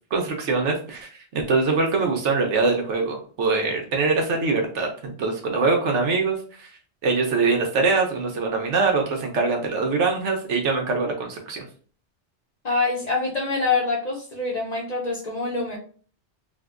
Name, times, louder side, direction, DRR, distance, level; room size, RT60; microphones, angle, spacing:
voice 1, 0.1-6.7 7.0-11.7, right 4 dB, 80° right, 2 dB, 1.1 m, -23 dB
voice 2, 12.6-15.8, left 3 dB, 45° left, -2 dB, 0.6 m, -25 dB
3.7 x 2.1 x 2.4 m, 0.42 s
omnidirectional pair, 1.2 m